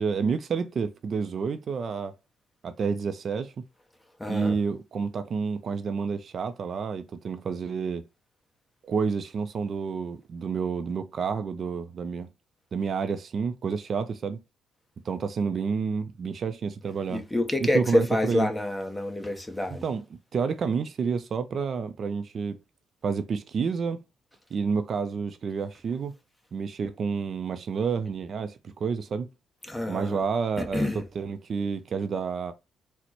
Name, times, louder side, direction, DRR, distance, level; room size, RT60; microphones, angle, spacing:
voice 1, 0.0-2.1 2.6-3.6 4.3-8.0 8.8-12.3 12.7-14.4 15.0-17.3 17.6-18.5 19.8-20.0 20.3-22.6 23.0-24.0 24.5-26.1 26.5-29.3 29.9-30.9 31.2-32.5, right 5 dB, 50° right, 0.4 m, -29 dB
voice 2, 4.2-4.6 17.1-19.8 29.7-30.2 30.6-31.0, left 1 dB, 10° left, 0.8 m, -27 dB
4.2 x 2.1 x 2.8 m
cardioid pair, 90°, 0 cm